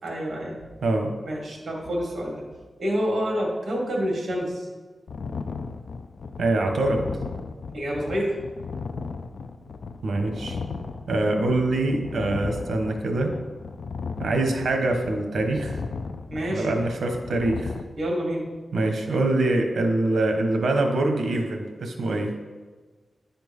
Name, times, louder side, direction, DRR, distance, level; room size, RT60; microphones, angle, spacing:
voice 1, 0.0-0.6 1.2-2.4 2.8-4.7 7.7-8.4 16.3-16.7 18.0-18.5, equal, 60° right, -1 dB, 2.3 m, -28 dB
voice 2, 0.8-1.1 6.4-7.0 10.0-10.6 11.1-13.3 14.2-15.8 16.5-17.7 18.7-22.3, right 2 dB, 80° right, 4 dB, 1.3 m, -24 dB
sound 1, 5.1-17.8, left 4 dB, 65° left, 0.6 m, -35 dB
11.0 x 4.5 x 5.5 m, 1.3 s
wide cardioid pair, 125°, 0 cm